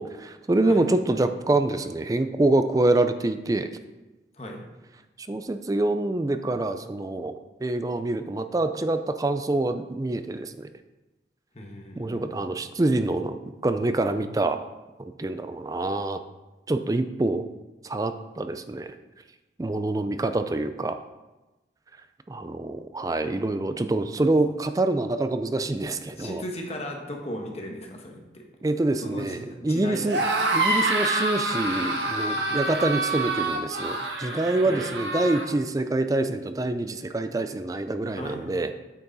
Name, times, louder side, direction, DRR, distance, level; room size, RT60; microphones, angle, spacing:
voice 1, 0.0-3.7 5.3-7.4 7.6-10.7 12.0-13.4 13.6-14.6 15.0-16.2 16.7-17.4 17.8-19.0 19.6-21.0 22.3-26.4 28.6-30.2 30.5-38.7, right 2 dB, 20° right, 9 dB, 0.4 m, -26 dB
voice 2, 11.5-12.3 26.2-28.4 29.0-30.3 30.6-30.7 34.6-34.9 38.1-38.6, left 1 dB, 35° left, 2 dB, 1.3 m, -37 dB
sound 1, 30.0-35.5, right 2 dB, 85° right, 1.2 m, -27 dB
8.5 x 6.9 x 4.1 m, 1.1 s
head